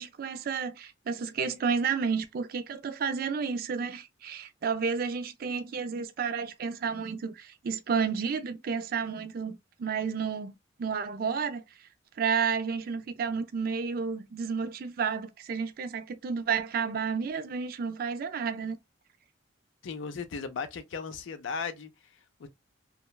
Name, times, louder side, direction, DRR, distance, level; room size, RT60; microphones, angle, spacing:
voice 1, 0.0-10.5 10.8-11.6 12.2-18.8, right 6 dB, 50° right, 0.4 m, -31 dB
voice 2, 19.8-22.5, left 5 dB, 85° left, 0.5 m, -37 dB
2.9 x 2.1 x 2.2 m
head